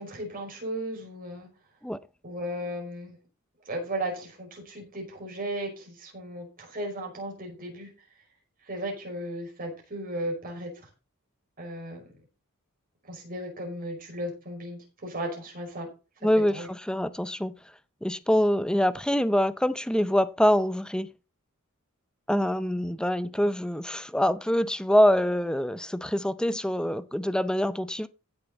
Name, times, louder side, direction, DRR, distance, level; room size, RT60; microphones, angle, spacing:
voice 1, 0.0-1.5 2.2-3.2 3.7-7.9 8.7-10.7 11.6-12.1 13.1-15.9 16.5-16.7, right 1 dB, 40° right, 5.3 m, -35 dB
voice 2, 16.2-17.5 18.0-21.1 22.3-28.1, equal, 5° left, 0.5 m, -25 dB
15.5 x 6.7 x 4.0 m
head